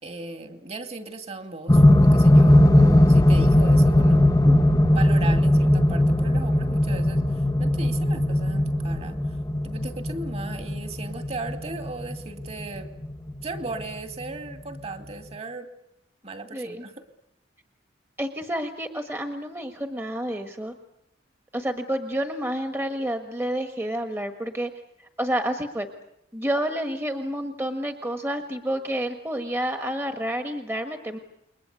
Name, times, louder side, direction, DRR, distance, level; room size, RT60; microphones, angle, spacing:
voice 1, 0.0-4.3 4.9-9.2 9.6-12.9 13.4-15.7 16.2-17.1, right 3 dB, 35° right, 8 dB, 2.4 m, -37 dB
sound 1, 1.7-13.8 14.8-14.9, left 1 dB, 20° left, 1.0 m, -19 dB
voice 2, 16.5-16.8 18.2-20.7 21.5-24.7 25.0-25.9 26.3-31.2, right 1 dB, 15° right, 6 dB, 1.5 m, -29 dB
29.0 x 22.5 x 8.3 m, 0.80 s
head